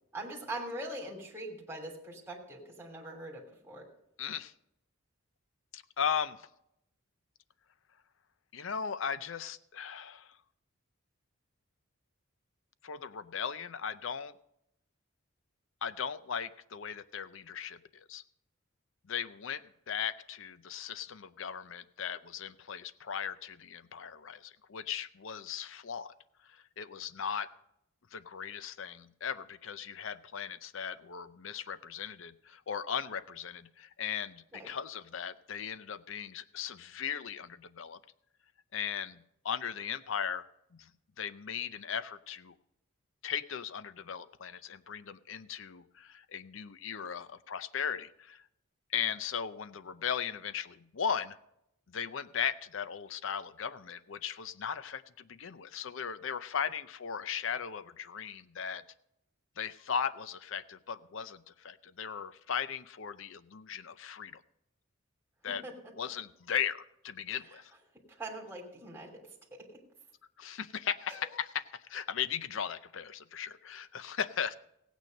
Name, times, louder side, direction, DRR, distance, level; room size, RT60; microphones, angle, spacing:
voice 1, 0.1-3.8 34.5-34.7 65.6-65.7 67.5-67.6 68.2-69.2 69.5-69.8 71.1-71.2, right 1 dB, 10° right, -2 dB, 3.0 m, -42 dB
voice 2, 4.2-4.5 5.7-6.5 8.5-10.4 12.8-14.3 15.8-18.2 19.1-26.1 26.5-27.5 28.1-38.0 38.7-40.4 40.7-40.9 41.2-42.5 43.2-48.4 48.9-51.4 51.9-58.8 59.6-64.4 65.4-65.6 66.0-67.7 70.4-74.5, left 7 dB, 65° left, 14 dB, 0.6 m, -37 dB
16.0 x 9.2 x 5.3 m, 0.79 s
head